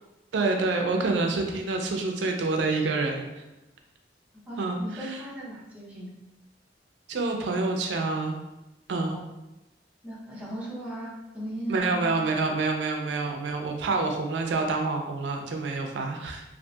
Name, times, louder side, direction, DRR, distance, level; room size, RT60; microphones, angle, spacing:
voice 1, 0.3-3.4 4.6-5.2 7.1-8.4 8.9-9.2 11.7-16.4, right 3 dB, 80° right, 3 dB, 0.4 m, -27 dB
voice 2, 4.5-6.2 9.1-9.2 10.0-12.4, right 1 dB, 10° right, -7 dB, 0.7 m, -37 dB
2.6 x 2.4 x 2.3 m, 0.97 s
head